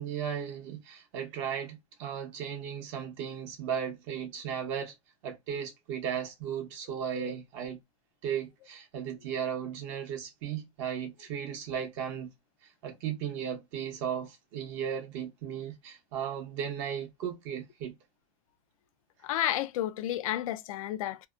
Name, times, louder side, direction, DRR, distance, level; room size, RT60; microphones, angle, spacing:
voice 1, 0.0-4.9 5.2-7.8 8.2-12.3 12.8-17.9, right 8 dB, 60° right, 0.8 m, -36 dB
voice 2, 19.2-21.3, left 13 dB, 85° left, 0.4 m, -32 dB
2.6 x 2.1 x 2.3 m
supercardioid pair, 145°, 17 cm